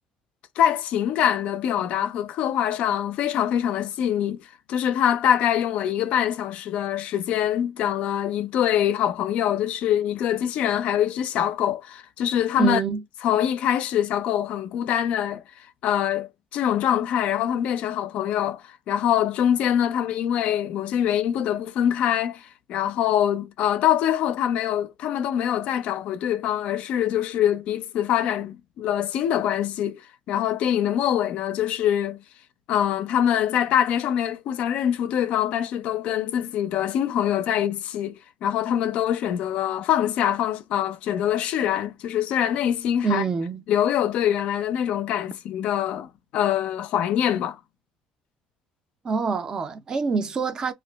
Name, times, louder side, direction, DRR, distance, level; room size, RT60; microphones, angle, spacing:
voice 1, 0.6-12.8 13.2-15.4 15.8-30.0 30.3-32.2 32.7-43.2 43.7-47.6, left 10 dB, 60° left, 0.4 m, -24 dB
voice 2, 12.6-13.0 43.0-43.6 49.0-50.7, right 5 dB, 30° right, 0.4 m, -25 dB
2.8 x 2.4 x 3.3 m
cardioid pair, 150°, 2 cm